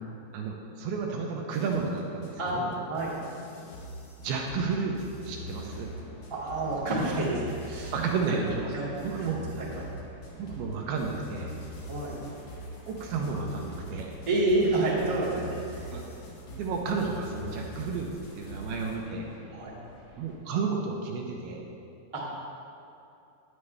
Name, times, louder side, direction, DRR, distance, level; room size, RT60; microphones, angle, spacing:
voice 1, 0.3-2.8 4.2-5.9 7.9-8.7 9.0-9.4 10.3-11.5 12.9-14.1 15.9-16.0 16.5-19.3 20.2-21.6, right 4 dB, 80° right, 0 dB, 2.5 m, -32 dB
sound 1, 1.5-19.0, left 1 dB, 65° left, 2.0 m, -43 dB
sound 2, 5.3-20.4, equal, 45° left, 1.7 m, -51 dB
voice 2, 6.3-7.9 8.7-8.9 9.1-9.8 11.9-12.1 14.2-15.6 19.5-19.7 22.1-22.4, right 2 dB, 20° right, -10 dB, 0.8 m, -28 dB
9.8 x 9.5 x 3.3 m, 2.7 s
omnidirectional pair, 4.8 m